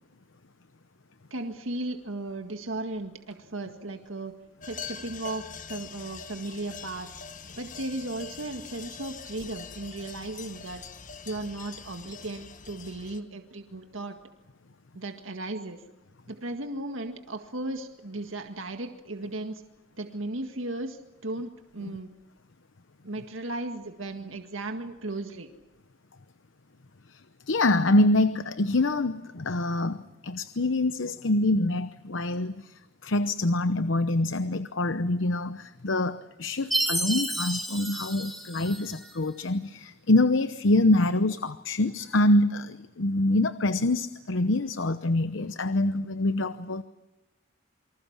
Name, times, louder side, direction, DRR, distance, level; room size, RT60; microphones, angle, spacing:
voice 1, 1.3-4.3 4.7-7.1 7.6-10.8 11.2-14.2 14.9-15.8 16.3-19.6 20.0-22.1 23.0-25.5, right 2 dB, 80° right, 5 dB, 1.9 m, -36 dB
sound 1, 4.6-13.2, left 6 dB, 40° left, 1.5 m, -43 dB
voice 2, 27.5-46.8, left 2 dB, 70° left, 12 dB, 0.9 m, -25 dB
Chime, 36.7-39.2, right 1 dB, ahead, 3.7 m, -31 dB
28.5 x 25.0 x 7.3 m, 1.0 s
head